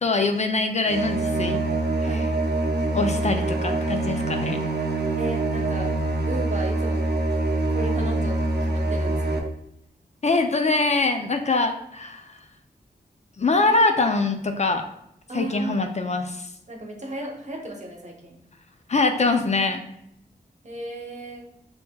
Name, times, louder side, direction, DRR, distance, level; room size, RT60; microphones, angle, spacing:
voice 1, 0.0-1.7 2.0-2.2 2.9-4.7 10.2-12.4 13.4-14.8 15.3-16.5 18.9-19.8, left 3 dB, 45° left, 6 dB, 0.4 m, -23 dB
sound 1, 0.8-9.4, right 2 dB, 85° right, 0.6 m, -25 dB
voice 2, 5.2-5.9 6.3-7.1 7.7-9.4 15.3-15.8 16.7-18.4 20.6-21.5, right 1 dB, 45° right, 0 dB, 0.9 m, -35 dB
5.3 x 2.7 x 2.2 m, 0.75 s
wide cardioid pair, 70°, 17 cm